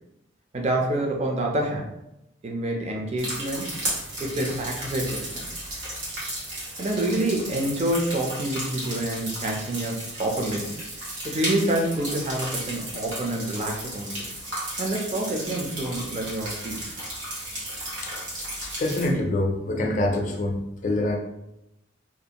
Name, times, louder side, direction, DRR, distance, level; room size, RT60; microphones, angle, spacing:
voice 1, 0.5-1.9 2.4-3.7 4.2-5.6 6.8-10.8 11.2-14.3 14.8-16.8, right 1 dB, 35° right, 0 dB, 0.5 m, -27 dB
sound 1, 3.2-19.1, right 1 dB, 85° right, 1.2 m, -34 dB
voice 2, 18.6-21.2, left 1 dB, 40° left, 2 dB, 0.4 m, -25 dB
2.6 x 2.4 x 2.8 m, 0.86 s
head